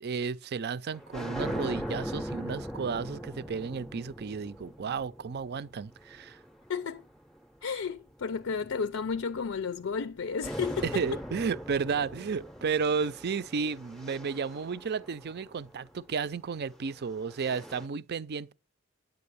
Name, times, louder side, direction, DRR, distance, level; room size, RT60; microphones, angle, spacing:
voice 1, 0.0-6.4 10.8-18.5, right 5 dB, 50° right, 0.5 m, -33 dB
sound 1, 0.9-7.4 8.2-10.1 10.4-15.7 16.7-17.9, equal, ahead, 0.6 m, -40 dB
voice 2, 6.7-7.0 7.6-10.9, left 5 dB, 70° left, 0.5 m, -32 dB
9.5 x 9.4 x 6.8 m
head